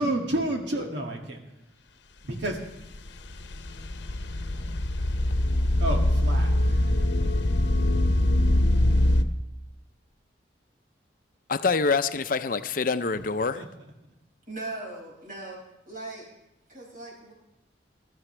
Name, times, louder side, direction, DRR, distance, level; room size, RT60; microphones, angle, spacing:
voice 1, 0.0-1.4 2.2-2.6 5.8-7.3 13.5-13.7, right 1 dB, 85° right, 0 dB, 2.2 m, -30 dB
sound 1, 2.4-9.2, left 1 dB, 80° left, 0.9 m, -23 dB
voice 2, 11.5-13.6, left 4 dB, 50° left, 12 dB, 0.6 m, -25 dB
voice 3, 14.5-15.6 15.9-16.3 16.7-17.3, right 2 dB, 50° right, -2 dB, 5.8 m, -38 dB
20.5 x 13.0 x 3.3 m, 0.92 s
head